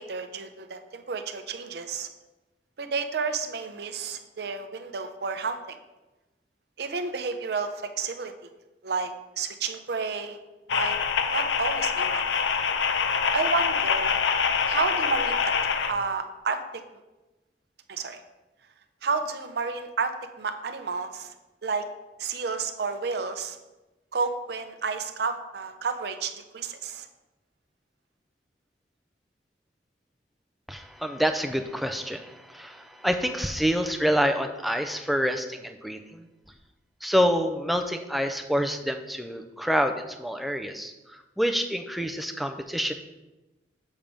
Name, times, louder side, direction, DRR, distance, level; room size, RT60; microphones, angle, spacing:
voice 1, 0.0-2.1 2.8-5.8 6.8-8.3 8.8-10.4 10.7-11.0 11.3-12.3 13.3-14.2 14.6-15.5 15.9-16.8 17.9-18.2 19.0-21.3 21.6-21.9 22.2-23.6 24.1-27.1, right 4 dB, 60° right, 8 dB, 0.6 m, -31 dB
sound 1, 10.7-15.9, left 6 dB, 80° left, 0.5 m, -25 dB
voice 2, 30.7-36.3 37.0-42.9, equal, ahead, 5 dB, 0.4 m, -27 dB
7.2 x 3.5 x 5.1 m, 1.1 s
head